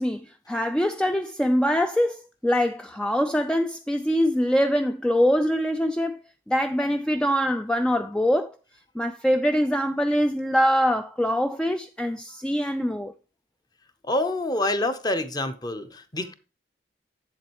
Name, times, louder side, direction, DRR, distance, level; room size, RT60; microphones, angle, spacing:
voice 1, 0.0-6.2 6.5-8.6 9.0-13.1, equal, 5° left, 0.3 m, -23 dB
voice 2, 14.1-16.3, left 1 dB, 25° left, 0.8 m, -27 dB
7.6 x 7.4 x 3.0 m
head